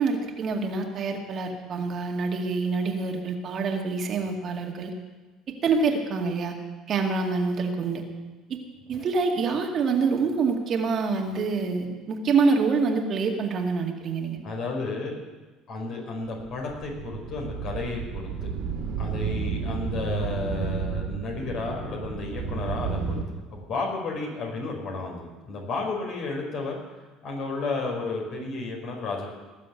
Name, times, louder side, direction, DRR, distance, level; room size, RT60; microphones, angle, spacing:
voice 1, 0.0-4.9 5.6-6.6 6.9-8.1 8.9-14.4, right 4 dB, 45° right, 2 dB, 2.1 m, -26 dB
voice 2, 14.4-15.2 15.7-18.5 19.0-23.2 23.5-26.8 27.2-29.3, left 3 dB, 55° left, 0 dB, 5.0 m, -32 dB
sound 1, 16.4-23.2, right 6 dB, 65° right, 2.4 m, -32 dB
18.5 x 7.5 x 8.2 m, 1.2 s
hypercardioid pair, 60°, 0 cm